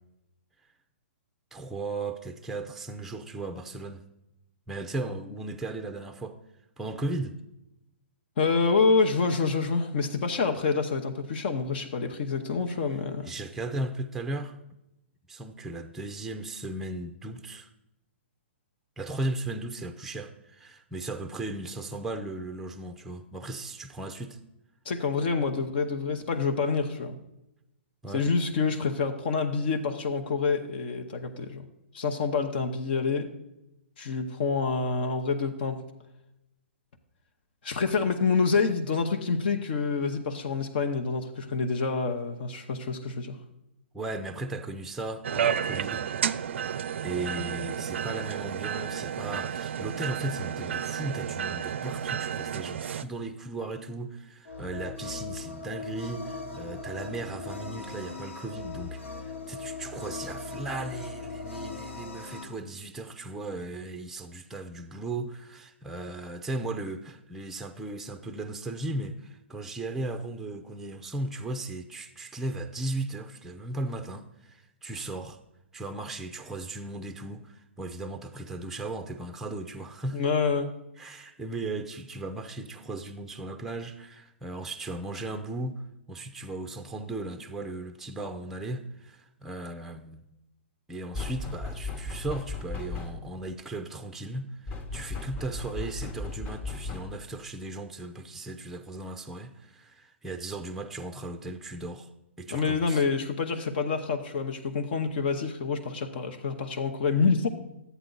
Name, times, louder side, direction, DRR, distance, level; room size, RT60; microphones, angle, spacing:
voice 1, 1.5-4.0 4.7-6.4 6.8-7.3 12.7-12.8 13.2-14.5 15.3-17.7 19.0-24.4 28.0-28.3 43.9-46.1 47.0-75.4 75.7-80.2 81.0-85.8 86.1-90.3 90.9-102.1 102.4-103.0, right 2 dB, 5° right, 0.5 m, -36 dB
voice 2, 8.4-13.3 24.8-27.2 28.1-31.7 31.9-33.3 34.0-35.8 37.6-43.4 80.1-80.7 102.5-107.5, left 4 dB, 55° left, 0.9 m, -27 dB
sound 1, 45.2-53.0, right 8 dB, 70° right, 0.4 m, -31 dB
sound 2, 54.5-62.4, left 4 dB, 80° left, 1.8 m, -39 dB
sound 3, 91.1-93.4 94.7-97.3, left 3 dB, 25° left, 1.0 m, -36 dB
11.0 x 8.2 x 3.9 m
hypercardioid pair, 140°, 7 cm